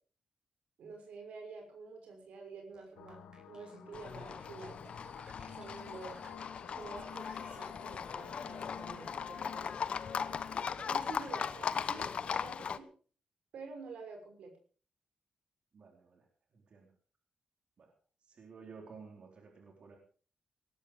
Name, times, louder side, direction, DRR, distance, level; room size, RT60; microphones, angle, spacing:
voice 1, 0.8-3.2 3.5-4.8 5.5-6.2 6.7-9.7 10.9-12.9 13.5-14.5, right 4 dB, 85° right, 4 dB, 5.9 m, -49 dB
sound 1, 2.7-11.8, right 3 dB, 40° right, 4.8 m, -58 dB
sound 2, 3.0-10.6, left 8 dB, 85° left, 1.9 m, -50 dB
Livestock farm animals working animals, 3.9-12.8, left 6 dB, 60° left, 1.0 m, -39 dB
voice 2, 15.7-16.3 16.5-16.9 17.8-17.9 18.2-20.0, right 5 dB, 60° right, 2 dB, 4.3 m, -53 dB
19.0 x 13.0 x 5.0 m, 0.41 s
cardioid pair, 80°, 2 cm